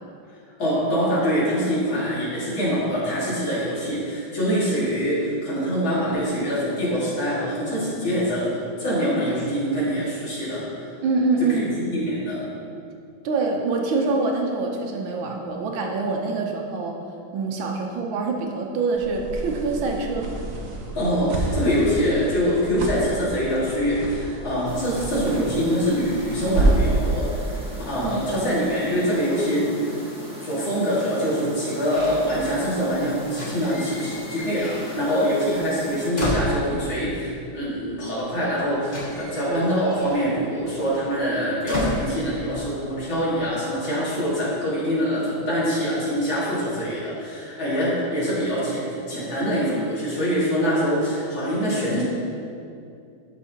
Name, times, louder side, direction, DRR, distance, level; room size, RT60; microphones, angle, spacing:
voice 1, 0.6-10.9 11.5-12.5 20.9-27.5 27.9-30.0 30.4-52.0, equal, 80° left, -9 dB, 2.9 m, -24 dB
voice 2, 11.0-11.8 13.2-17.0 17.3-20.3 28.0-28.6, right 3 dB, 90° right, 1 dB, 1.6 m, -25 dB
sound 1, 18.9-27.0, right 2 dB, 60° right, 1.3 m, -28 dB
sound 2, 24.6-36.1, equal, 5° right, 0.9 m, -39 dB
sound 3, 31.9-32.9 33.3-35.3 35.5-37.1 38.1-38.2 38.4-42.9 43.2-43.6, equal, 25° left, 1.3 m, -33 dB
13.0 x 5.4 x 2.9 m, 2.5 s
omnidirectional pair, 2.1 m